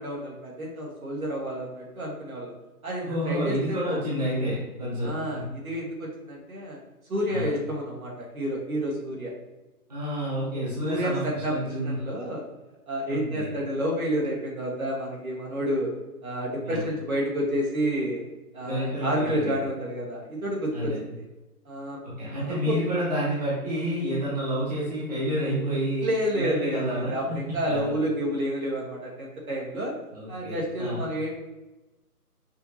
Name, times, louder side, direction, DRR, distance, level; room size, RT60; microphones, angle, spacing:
voice 1, 0.0-2.5 2.8-3.8 5.0-6.8 7.1-9.3 10.8-12.4 12.9-15.9 16.2-18.2 18.5-21.2 21.6-22.8 26.0-29.9 30.3-31.4, equal, 65° right, -3 dB, 1.4 m, -30 dB
voice 2, 3.0-5.1 7.3-7.5 9.9-12.0 13.1-13.5 16.7-16.8 18.6-19.6 20.7-21.0 22.2-26.0 26.3-28.0 30.1-31.1, equal, 25° right, -9 dB, 1.0 m, -29 dB
5.6 x 2.7 x 2.7 m, 1.0 s
hypercardioid pair, 170°, 46 cm